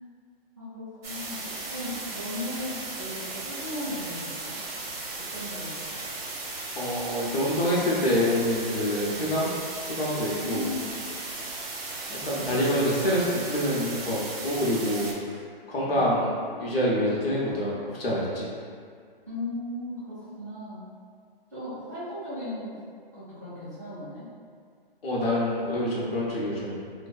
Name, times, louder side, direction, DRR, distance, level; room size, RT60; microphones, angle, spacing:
voice 1, 0.6-4.6 5.3-6.0 9.1-9.2 10.4-10.9 12.4-12.6 15.8-16.0 19.3-20.8 21.5-22.8 23.1-24.3, left 1 dB, 20° right, -16 dB, 0.5 m, -37 dB
sound 1, 1.0-15.1, right 2 dB, 85° right, 0.7 m, -36 dB
voice 2, 6.8-9.5 9.9-10.7 12.1-15.1 15.7-16.3 16.6-18.5 25.0-26.8, equal, 85° left, -5 dB, 0.9 m, -26 dB
2.6 x 2.2 x 2.3 m, 2.1 s
hypercardioid pair, 180°, 29 cm